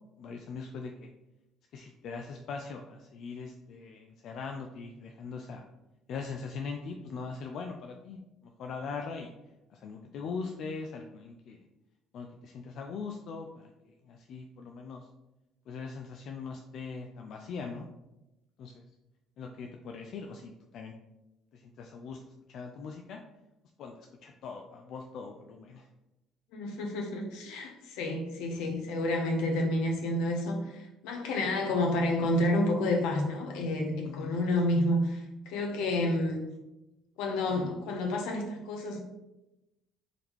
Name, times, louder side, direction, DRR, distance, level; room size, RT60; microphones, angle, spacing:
voice 1, 0.2-1.1 1.7-5.7 6.1-9.3 9.7-11.7 12.1-15.1 15.7-17.9 18.6-18.8 19.4-20.9 21.5-22.2 22.5-23.2 23.8-25.9 34.0-34.4, left 4 dB, 65° left, 3 dB, 0.3 m, -41 dB
voice 2, 26.5-36.5 37.2-39.0, left 1 dB, 85° left, 2 dB, 0.8 m, -29 dB
3.7 x 3.6 x 3.0 m, 0.96 s
supercardioid pair, 90°, 0 cm